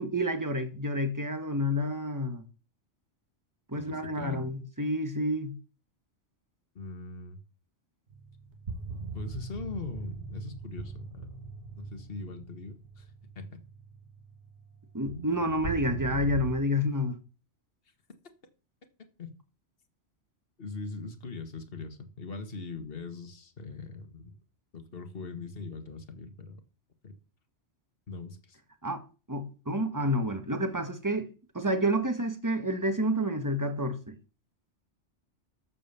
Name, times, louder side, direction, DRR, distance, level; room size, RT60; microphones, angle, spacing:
voice 1, 0.0-2.4 3.7-5.5 14.9-17.2 28.8-31.3 31.5-34.2, equal, 15° right, 1.5 m, -29 dB
voice 2, 3.7-4.5 6.8-7.4 9.1-11.3 11.8-13.1 13.4-13.5 19.2-19.3 20.6-24.3 24.7-26.6 27.0-27.1 28.1-28.6, left 4 dB, 55° left, 1.8 m, -41 dB
sound 1, 8.1-16.5, right 4 dB, 70° right, 2.5 m, -41 dB
13.0 x 5.2 x 7.0 m
omnidirectional pair, 1.2 m